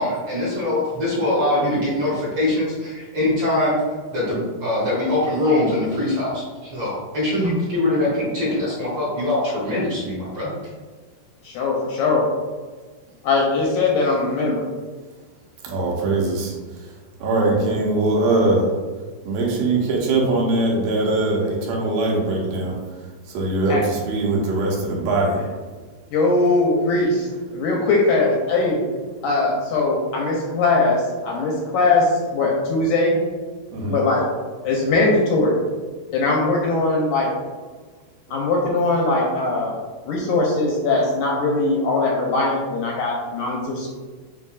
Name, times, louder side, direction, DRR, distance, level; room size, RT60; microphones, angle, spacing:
voice 1, 0.0-3.8 4.1-10.6, left 1 dB, 65° right, -8 dB, 1.3 m, -22 dB
voice 2, 11.4-12.2 13.2-14.7 23.7-23.8 26.1-27.3 27.5-28.8 29.2-33.1 33.9-34.3 34.6-35.6 36.1-37.3 38.3-39.7 40.1-43.9, left 3 dB, 80° left, -2 dB, 1.9 m, -20 dB
voice 3, 15.6-16.5 17.2-18.7 19.3-22.8 23.3-25.4 33.7-34.0, right 2 dB, 90° right, -2 dB, 2.6 m, -21 dB
7.1 x 2.7 x 2.3 m, 1.4 s
omnidirectional pair, 4.0 m